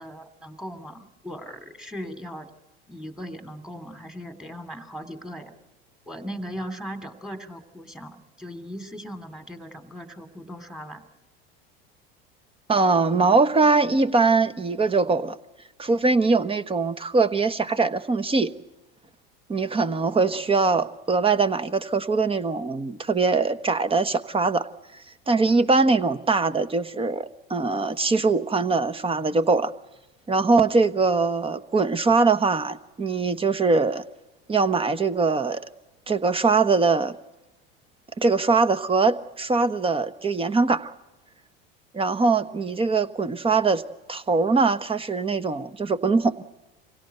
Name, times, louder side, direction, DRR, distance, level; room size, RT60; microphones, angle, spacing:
voice 1, 0.0-2.5 2.9-5.5 6.1-11.1, equal, ahead, 9 dB, 2.6 m, -38 dB
voice 2, 12.7-15.4 15.8-18.5 19.5-24.7 25.3-29.7 30.3-34.0 34.5-35.6 36.1-37.1 38.2-40.9 41.9-43.8 44.1-46.4, right 4 dB, 20° right, 13 dB, 1.1 m, -22 dB
25.5 x 17.0 x 8.1 m, 1.0 s
supercardioid pair, 100°, 30 cm